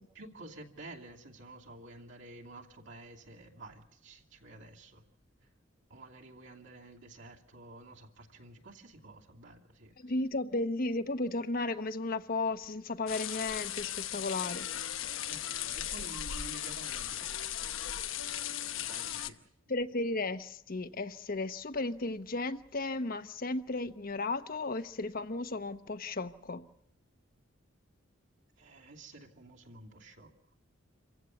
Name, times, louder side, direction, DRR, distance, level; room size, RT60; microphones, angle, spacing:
voice 1, 0.1-5.0 5.9-9.9 15.3-17.4 18.8-19.4 28.6-30.3, right 2 dB, 65° right, 2.8 m, -51 dB
voice 2, 10.0-14.7 19.7-26.7, left 2 dB, 45° left, 0.9 m, -34 dB
sound 1, 13.1-19.3, left 11 dB, 80° left, 1.0 m, -37 dB
27.5 x 15.5 x 8.2 m
head